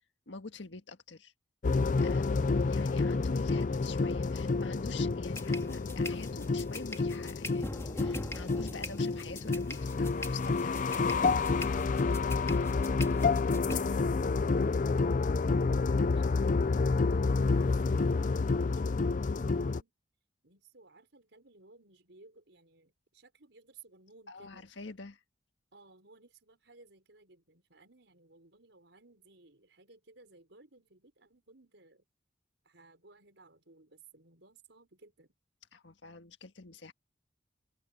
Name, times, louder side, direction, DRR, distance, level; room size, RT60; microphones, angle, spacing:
voice 1, 0.3-1.3 2.0-2.4 2.6-11.0 11.3-11.6 13.7-14.0 24.3-25.2 35.7-36.9, left 3 dB, 85° left, 1.6 m, -46 dB
sound 1, 1.6-19.8, left 4 dB, 45° left, 0.5 m, -29 dB
sound 2, 5.3-13.8, left 1 dB, 15° left, 1.8 m, -42 dB
voice 2, 13.8-19.9 20.4-24.7 25.7-32.0 32.6-35.3, right 3 dB, 75° right, 5.1 m, -60 dB
open air
head